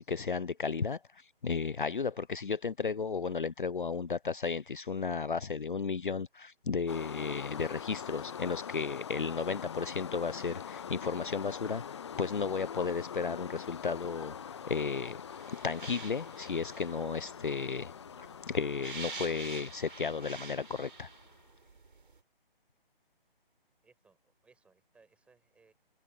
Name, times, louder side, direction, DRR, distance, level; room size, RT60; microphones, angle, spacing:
voice 1, 0.0-15.2 15.5-17.9 18.2-21.1, left 5 dB, 55° left, 0.9 m, -34 dB
sound 1, 6.9-21.3, left 8 dB, 30° left, 1.1 m, -44 dB
sound 2, 13.7-22.2, right 4 dB, 55° right, 4.7 m, -49 dB
voice 2, 23.8-25.7, right 4 dB, 5° right, 7.7 m, -65 dB
figure-of-eight pair, 145°, 30 cm